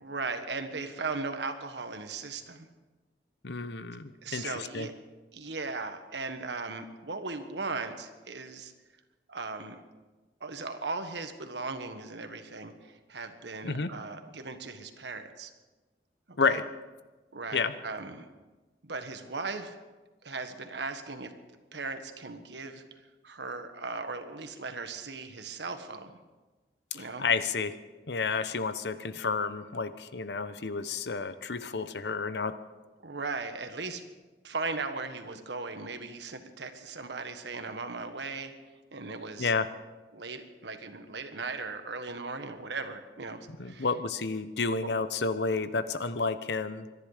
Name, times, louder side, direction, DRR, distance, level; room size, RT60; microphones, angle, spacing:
voice 1, 0.0-2.7 4.2-4.9 5.3-8.7 9.3-9.8 10.4-15.5 16.3-16.6 17.3-18.2 18.8-19.8 20.2-21.3 21.7-22.8 23.2-26.2 26.9-27.2 33.0-34.0 34.4-38.5 38.9-39.5 40.1-43.9 44.8-44.9, right 3 dB, 85° right, 7 dB, 1.5 m, -38 dB
voice 2, 3.4-4.9 13.6-13.9 16.4-16.6 17.5-17.7 26.9-27.7 28.1-32.5 39.4-39.7 43.6-46.9, left 4 dB, 80° left, 12 dB, 0.9 m, -30 dB
24.5 x 11.0 x 5.1 m, 1.2 s
head